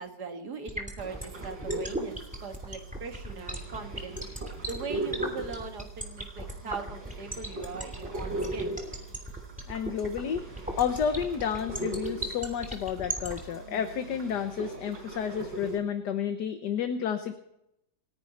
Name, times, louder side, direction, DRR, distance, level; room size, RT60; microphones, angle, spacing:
voice 1, 0.0-4.2 4.7-8.7, right 5 dB, 65° right, 5 dB, 2.3 m, -40 dB
sound 1, 0.7-13.4, right 1 dB, 5° right, 2.8 m, -36 dB
sound 2, 1.0-15.8, right 2 dB, 90° right, 5.4 m, -39 dB
voice 2, 9.7-10.4 10.8-17.3, left 8 dB, 70° left, 7 dB, 1.6 m, -31 dB
29.0 x 10.0 x 4.2 m, 0.82 s
omnidirectional pair, 1.9 m